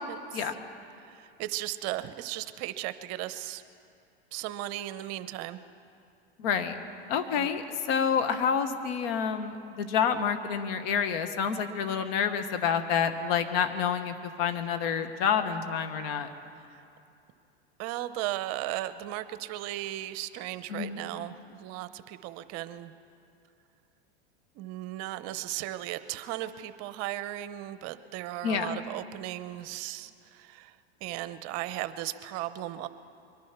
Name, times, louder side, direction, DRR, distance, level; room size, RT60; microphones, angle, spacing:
voice 1, 0.1-0.5 1.0-3.6 4.3-5.6 7.2-7.5 14.9-15.0 17.8-22.9 24.5-30.8 31.0-32.9, right 14 dB, 50° right, 13 dB, 0.8 m, -36 dB
voice 2, 6.4-6.7 7.1-7.6 7.9-16.3 20.7-21.0 28.4-28.8, left 7 dB, 60° left, 8 dB, 1.4 m, -28 dB
23.0 x 10.5 x 6.0 m, 2.5 s
hypercardioid pair, 105°, 32 cm